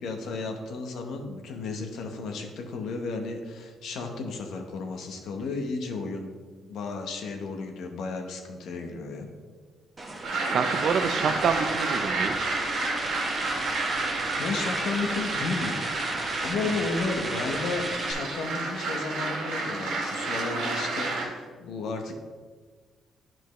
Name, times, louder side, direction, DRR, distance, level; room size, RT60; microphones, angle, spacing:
voice 1, 0.0-6.3 6.6-9.3 14.4-15.8 16.4-22.1, left 3 dB, 75° left, 3 dB, 1.0 m, -33 dB
sound 1, 10.0-18.1, right 2 dB, 30° right, 1.2 m, -34 dB
sound 2, 10.2-21.2, right 3 dB, 80° right, 1.6 m, -31 dB
voice 2, 10.5-12.5 16.6-16.8, right 6 dB, 65° right, 10 dB, 0.5 m, -27 dB
10.0 x 4.5 x 3.1 m, 1.5 s
cardioid pair, 90°, 0 cm